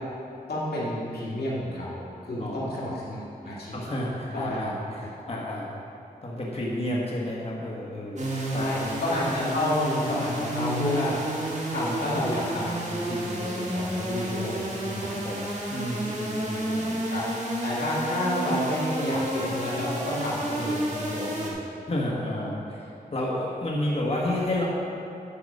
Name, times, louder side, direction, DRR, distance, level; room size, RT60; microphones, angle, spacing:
voice 1, 0.5-3.7 4.3-4.7 8.5-15.2 17.1-17.3 17.6-21.6, left 1 dB, 85° left, -7 dB, 2.4 m, -30 dB
voice 2, 2.4-5.7 6.2-8.3 8.5-8.9 15.2-17.0 21.9-24.6, left 1 dB, 40° left, -4 dB, 1.5 m, -31 dB
sound 1, 8.2-21.5, right 1 dB, 45° right, 2.0 m, -31 dB
10.0 x 5.8 x 5.4 m, 2.8 s
wide cardioid pair, 80°, 16 cm